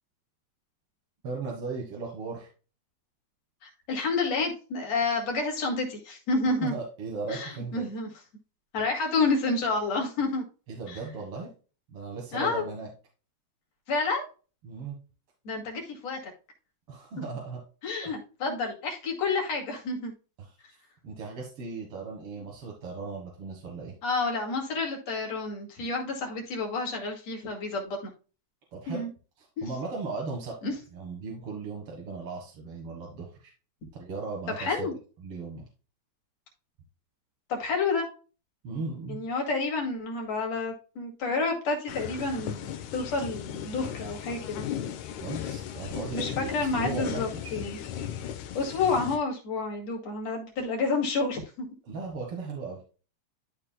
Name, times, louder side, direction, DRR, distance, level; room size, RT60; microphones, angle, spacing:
voice 1, 1.2-2.5 6.6-7.9 10.7-11.5 11.9-12.9 14.6-15.0 16.9-17.6 18.0-18.1 20.4-20.5 21.0-23.9 28.7-29.1 29.4-30.6 30.9-33.5 33.9-34.9 35.2-35.7 38.6-39.2 45.2-47.6 51.9-52.9, right 4 dB, 55° right, -2 dB, 2.4 m, -37 dB
voice 2, 3.6-6.7 7.3-8.1 8.7-10.4 10.9-11.0 12.3-12.6 13.9-14.2 15.4-16.2 17.8-20.1 24.0-28.1 28.9-29.1 30.6-30.7 34.6-34.9 37.5-38.1 39.1-42.7 42.9-44.6 46.1-47.8 48.5-51.4, left 3 dB, 65° left, 1 dB, 3.3 m, -29 dB
sound 1, 41.9-49.2, left 10 dB, 85° left, 2.3 m, -36 dB
13.0 x 4.7 x 2.2 m, 0.35 s
omnidirectional pair, 3.3 m